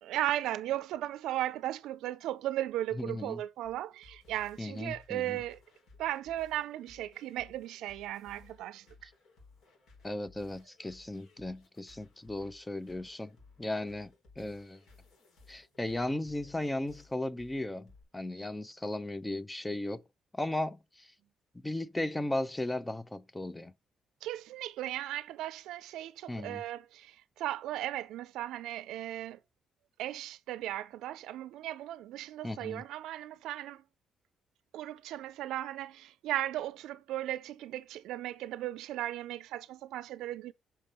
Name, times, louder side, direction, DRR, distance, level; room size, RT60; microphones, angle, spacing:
voice 1, 0.0-5.6 6.0-9.1 24.2-29.4 30.0-33.8 34.7-40.5, right 13 dB, 90° right, 0.4 m, -36 dB
voice 2, 3.0-3.4 4.6-5.4 10.0-13.3 13.6-14.8 15.5-20.0 20.3-21.1 21.6-23.7 26.3-26.6 32.4-32.8, left 1 dB, 15° left, 0.6 m, -36 dB
sound 1, 3.6-18.0, left 3 dB, 70° left, 4.2 m, -59 dB
5.8 x 5.2 x 4.3 m
cardioid pair, 90°, 0 cm